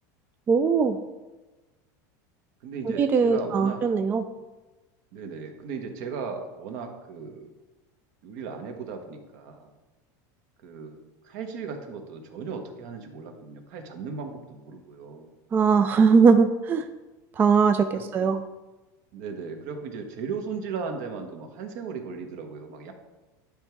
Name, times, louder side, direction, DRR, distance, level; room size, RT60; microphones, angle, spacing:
voice 1, 0.5-1.0 3.0-4.3 15.5-16.8 17.4-18.4, right 5 dB, 20° right, 7 dB, 0.3 m, -20 dB
voice 2, 2.6-3.8 5.1-7.5 8.2-9.7 10.6-11.0 11.2-15.3 17.9-18.3 19.1-22.9, right 5 dB, 65° right, 4 dB, 1.2 m, -36 dB
10.0 x 3.6 x 4.6 m, 1.1 s
supercardioid pair, 145°, 10 cm